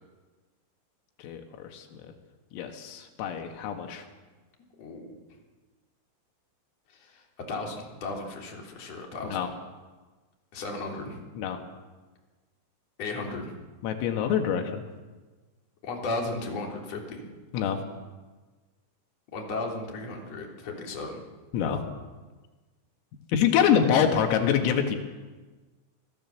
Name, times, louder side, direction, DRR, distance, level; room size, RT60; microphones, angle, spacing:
voice 1, 1.2-1.9 2.5-4.1 9.3-9.5 11.4-11.6 13.8-14.8 17.5-17.8 21.5-21.8 23.3-25.0, left 8 dB, 85° left, 4 dB, 4.5 m, -25 dB
voice 2, 4.8-5.2 6.9-9.5 10.5-11.2 13.0-13.6 15.8-17.3 19.3-21.2 24.0-24.2, left 2 dB, 35° left, 0 dB, 4.0 m, -35 dB
27.0 x 17.5 x 7.2 m, 1.3 s
omnidirectional pair, 5.9 m